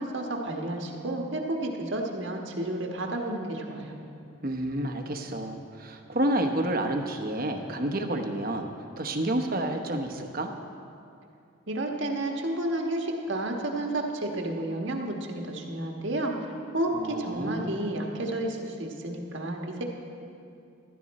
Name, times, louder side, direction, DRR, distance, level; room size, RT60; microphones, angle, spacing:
voice 1, 0.0-4.0 11.7-16.4 16.7-19.8, right 1 dB, 65° right, 1 dB, 1.4 m, -31 dB
voice 2, 4.4-8.7 9.0-10.5 16.9-17.8, right 1 dB, 45° right, 4 dB, 1.0 m, -29 dB
15.0 x 13.0 x 4.2 m, 2.6 s
head